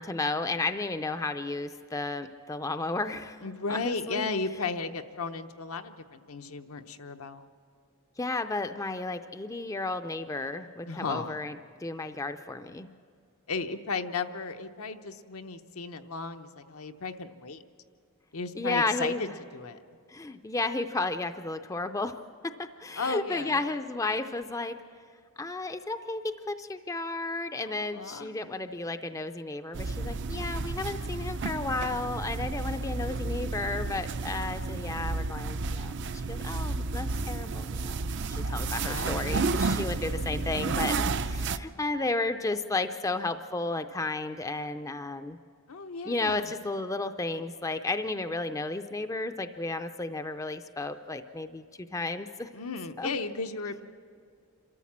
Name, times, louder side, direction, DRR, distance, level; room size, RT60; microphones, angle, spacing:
voice 1, 0.0-3.4 3.7-4.3 8.2-12.9 18.5-19.2 20.1-22.1 22.4-24.8 25.4-45.4 46.0-51.7 51.9-52.5 53.0-53.1, left 3 dB, 15° left, 9 dB, 0.4 m, -33 dB
voice 2, 3.4-7.4 10.9-11.4 13.5-17.6 18.3-19.8 23.0-23.6 27.6-28.3 38.4-39.2 45.7-46.5 52.5-53.9, left 4 dB, 80° left, 7 dB, 0.9 m, -35 dB
sound 1, 29.7-41.6, right 3 dB, 55° right, 0.5 m, -31 dB
27.0 x 13.5 x 7.4 m, 2.2 s
head